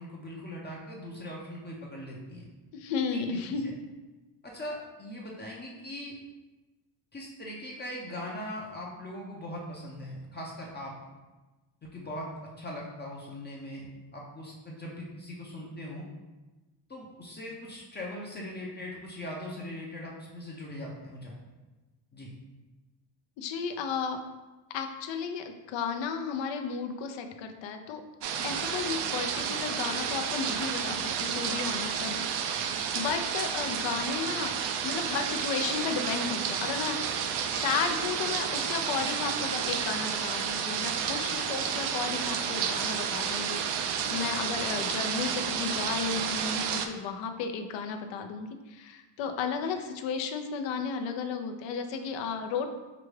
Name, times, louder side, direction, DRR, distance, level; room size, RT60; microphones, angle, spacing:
voice 1, 0.0-2.5 3.1-3.7 4.4-6.1 7.1-10.9 11.9-16.1 16.9-21.4 22.1-22.3, left 1 dB, 25° left, -3 dB, 0.6 m, -40 dB
voice 2, 2.7-3.6 23.4-24.2 24.7-28.0 28.4-32.2 32.9-34.5 34.8-37.2 37.5-43.6 44.1-52.7, left 6 dB, 70° left, 6 dB, 0.6 m, -33 dB
sound 1, 28.2-46.9, right 7 dB, 65° right, 0.5 m, -31 dB
4.9 x 2.3 x 3.2 m, 1.1 s
cardioid pair, 115°, 45 cm